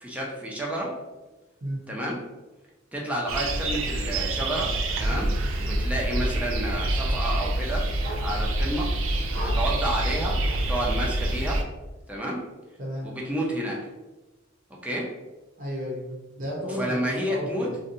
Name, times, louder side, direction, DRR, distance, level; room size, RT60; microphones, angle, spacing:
voice 1, 0.0-1.0 1.9-2.2 2.9-5.3 5.6-7.9 8.2-8.9 9.3-11.6 12.1-12.4 13.0-13.8 14.8-15.1 16.7-17.7, right 1 dB, 5° right, -3 dB, 0.5 m, -30 dB
sound 1, 3.3-11.6, right 1 dB, 80° right, 0.4 m, -26 dB
sound 2, 8.0-8.7 9.2-10.7, equal, 65° right, 0.9 m, -44 dB
voice 2, 15.6-17.8, equal, 45° right, -4 dB, 0.7 m, -33 dB
2.6 x 2.1 x 2.5 m, 1.1 s
head